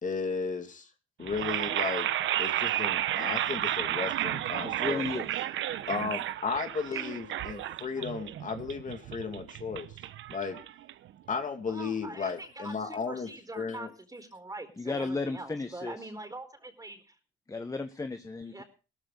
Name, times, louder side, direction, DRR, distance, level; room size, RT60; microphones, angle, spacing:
voice 1, 0.0-0.9 1.2-2.1 2.4-5.0 5.9-9.9 10.3-10.6 11.3-13.3 13.5-13.9, left 5 dB, 40° left, 5 dB, 2.4 m, -34 dB
sound 1, 1.2-11.3, right 12 dB, 75° right, 0.9 m, -32 dB
voice 2, 4.6-5.4 14.8-16.1 17.5-18.6, left 3 dB, 15° left, 9 dB, 1.2 m, -34 dB
voice 3, 6.9-7.2 8.0-8.1 11.7-17.2 18.5-18.6, right 2 dB, 20° right, 7 dB, 4.3 m, -43 dB
17.5 x 14.0 x 4.0 m, 0.35 s
cardioid pair, 90°, 20 cm